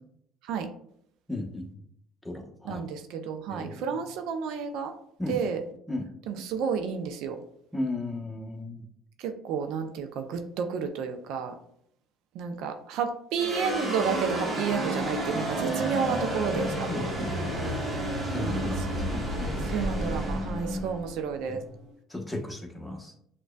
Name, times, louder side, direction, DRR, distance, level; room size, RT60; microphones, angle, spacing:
voice 1, 1.3-1.7 2.2-2.8 3.5-3.9 5.2-5.4 5.9-6.1 7.7-8.8 16.9-17.7 18.2-20.9 21.5-21.6 22.1-23.1, left 2 dB, 10° left, 2 dB, 0.9 m, -35 dB
voice 2, 2.6-4.9 5.3-5.6 6.3-7.4 9.2-11.5 12.3-17.0 18.4-18.7 19.7-21.6, right 6 dB, 75° right, 6 dB, 0.4 m, -31 dB
sound 1, 13.4-21.9, right 1 dB, 25° right, 1.3 m, -31 dB
6.2 x 2.2 x 2.2 m, 0.69 s
supercardioid pair, 80°, 0 cm